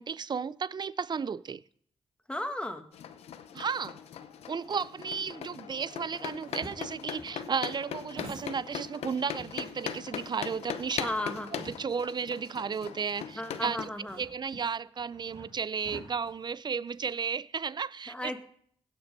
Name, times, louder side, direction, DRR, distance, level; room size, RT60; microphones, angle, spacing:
voice 1, 0.0-1.6 3.5-4.0 4.5-11.1 11.8-13.8 14.2-18.4, right 6 dB, 45° right, 0.5 m, -34 dB
voice 2, 2.3-2.9 11.0-11.5 13.3-14.2 18.1-18.4, left 1 dB, 10° left, 1.5 m, -35 dB
sound 1, 2.9-13.9, left 8 dB, 85° left, 0.7 m, -40 dB
sound 2, 6.2-9.1 9.4-12.2 12.6-12.7 13.5-17.2, right 3 dB, 80° right, 2.6 m, -49 dB
16.5 x 6.0 x 5.3 m
cardioid pair, 55°, 10 cm